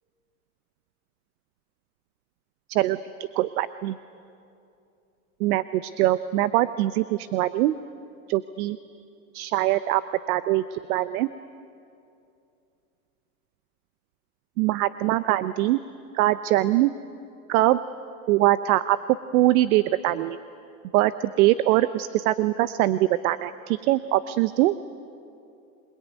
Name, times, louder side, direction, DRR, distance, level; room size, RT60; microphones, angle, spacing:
voice 1, 2.7-3.0 3.3-4.0 5.4-7.8 8.3-8.8 9.3-10.0 10.3-11.3 14.6-15.8 16.1-16.9 17.5-17.8 18.3-19.0 19.3-20.4 20.9-24.8, right 15 dB, 70° right, 14 dB, 0.9 m, -22 dB
27.0 x 21.0 x 9.4 m, 2.6 s
supercardioid pair, 130°, 44 cm